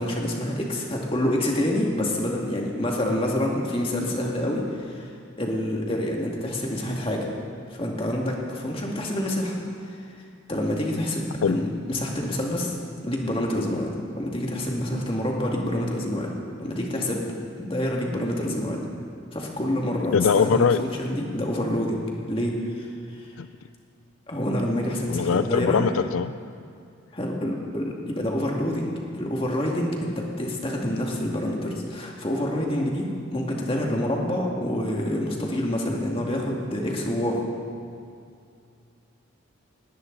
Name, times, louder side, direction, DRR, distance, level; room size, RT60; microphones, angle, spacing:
voice 1, 0.0-5.1 5.4-7.3 7.7-9.6 9.9-10.0 10.5-12.8 13.0-16.3 16.6-17.3 17.6-18.9 19.3-23.3 24.3-25.8 27.1-37.4, left 1 dB, 25° left, -1 dB, 2.2 m, -27 dB
voice 2, 20.1-20.8 23.4-23.5 25.1-26.3, left 6 dB, 85° left, 12 dB, 0.4 m, -21 dB
19.0 x 17.5 x 4.0 m, 2.4 s
head